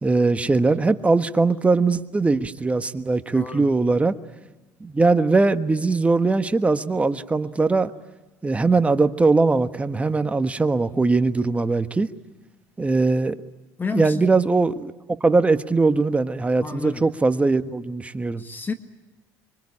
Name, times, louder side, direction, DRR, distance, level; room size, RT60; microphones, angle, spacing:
voice 1, 0.0-4.1 4.8-7.9 8.4-12.1 12.8-13.3 13.9-14.9 15.2-18.4, right 3 dB, 15° right, 1.4 m, -20 dB
voice 2, 3.3-3.7 13.8-14.3 16.6-17.0 18.4-18.7, left 4 dB, 25° left, 1.6 m, -30 dB
25.5 x 23.5 x 9.9 m
supercardioid pair, 90°, 8 cm